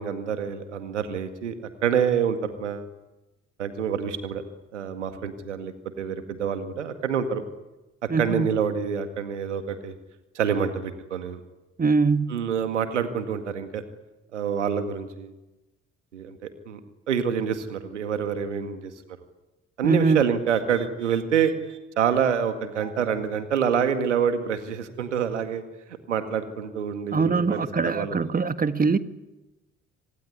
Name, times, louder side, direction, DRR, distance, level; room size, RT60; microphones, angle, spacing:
voice 1, 0.0-1.6 1.8-2.9 3.6-4.4 4.7-7.4 8.0-9.9 10.3-11.4 12.3-13.8 14.3-15.3 16.1-16.8 17.1-18.9 19.8-25.6 26.1-28.3, right 7 dB, 85° right, 9 dB, 2.0 m, -27 dB
voice 2, 8.1-8.5 11.8-12.3 19.8-20.2 27.1-29.0, right 4 dB, 25° right, 11 dB, 1.7 m, -22 dB
25.5 x 19.0 x 9.7 m, 1.1 s
figure-of-eight pair, 50°, 35 cm